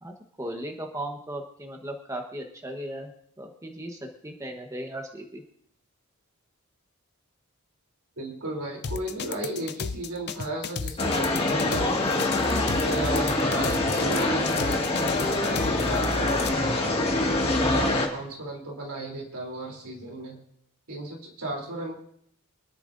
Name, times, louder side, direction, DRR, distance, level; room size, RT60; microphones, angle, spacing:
voice 1, 0.0-3.1 3.4-5.4, right 1 dB, 15° right, 3 dB, 1.1 m, -37 dB
voice 2, 8.2-11.9 12.6-14.5 14.9-17.0 17.4-20.4 20.9-22.0, right 2 dB, 85° right, -1 dB, 3.3 m, -35 dB
sound 1, 8.8-16.5, left 6 dB, 50° left, 0.5 m, -34 dB
sound 2, 11.0-18.1, left 2 dB, 25° left, 1.8 m, -25 dB
sound 3, 16.0-17.5, right 2 dB, 45° right, 4.3 m, -42 dB
25.0 x 10.0 x 2.6 m, 0.67 s
head